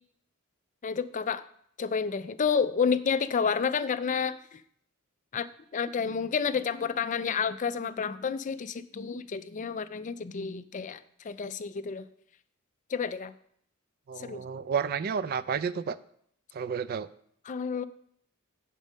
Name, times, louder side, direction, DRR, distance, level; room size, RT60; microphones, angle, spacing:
voice 1, 0.8-1.4 1.8-4.6 5.3-12.0 12.9-13.3 14.2-14.4 17.5-17.8, left 6 dB, 35° left, 13 dB, 0.4 m, -30 dB
voice 2, 14.1-16.0 16.5-17.1, right 6 dB, 45° right, 16 dB, 0.3 m, -31 dB
8.2 x 5.4 x 6.4 m, 0.67 s
head